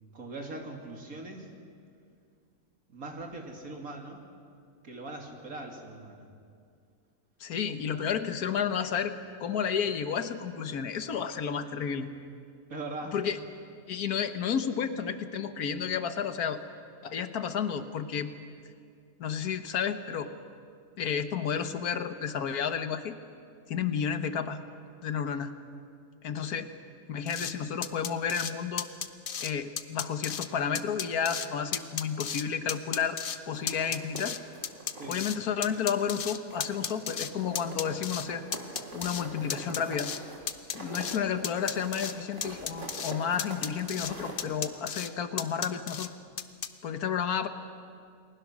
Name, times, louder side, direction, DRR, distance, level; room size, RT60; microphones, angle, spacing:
voice 1, 0.1-1.5 2.9-4.2 4.8-6.3 12.7-13.3 35.0-35.3, right 2 dB, 70° right, 2 dB, 3.1 m, -41 dB
voice 2, 7.4-9.1 9.4-12.1 13.1-13.4 13.9-16.6 17.0-18.3 19.2-20.3 21.0-23.2 23.7-24.6 25.0-25.5 26.2-26.7 27.1-28.9 29.4-33.2 33.5-34.4 35.1-38.4 38.9-40.1 40.7-46.1 46.8-47.5, left 7 dB, 85° left, 9 dB, 1.6 m, -31 dB
sound 1, 27.3-27.5 27.8-28.5 28.8-29.5 29.8-30.5 30.7-31.5 31.7-32.4 32.7-33.4 33.7-35.4 35.6-37.3 37.5-38.3 38.5-39.2 39.5-40.2 40.5-41.2 41.4-42.1 42.4-43.1 43.4-44.1 44.4-45.1 45.4-46.1 46.4-46.7, left 7 dB, 45° left, 0.8 m, -34 dB
sound 2, 33.5-35.3 35.6-36.2 36.5-44.5, right 1 dB, 35° right, 3.2 m, -44 dB
29.5 x 20.5 x 6.2 m, 2.3 s
omnidirectional pair, 1.5 m